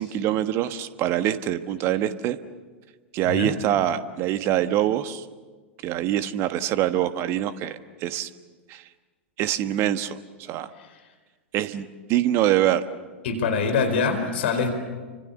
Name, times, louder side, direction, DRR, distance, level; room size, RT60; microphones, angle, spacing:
voice 1, 0.0-2.4 3.1-5.2 5.8-8.3 8.7-8.8 9.4-10.7 11.5-12.8, right 12 dB, 40° right, 12 dB, 1.4 m, -24 dB
voice 2, 3.2-3.6 10.7-11.1 13.2-14.7, left 5 dB, 60° left, 7 dB, 4.5 m, -25 dB
29.5 x 25.5 x 7.1 m, 1.4 s
figure-of-eight pair, 95°, 7 cm